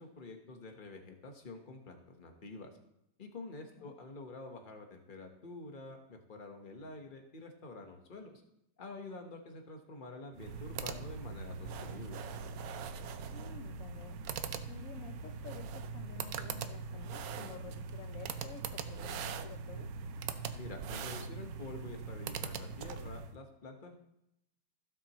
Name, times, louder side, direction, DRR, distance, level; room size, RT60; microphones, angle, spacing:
voice 1, 0.0-2.7 3.2-8.4 8.8-12.2 20.5-23.9, left 3 dB, 30° left, 3 dB, 1.3 m, -48 dB
sound 1, 10.3-23.3, right 5 dB, 65° right, 1.0 m, -41 dB
voice 2, 13.3-19.9, left 7 dB, 60° left, 6 dB, 1.0 m, -51 dB
16.0 x 7.7 x 3.1 m, 0.81 s
omnidirectional pair, 1.9 m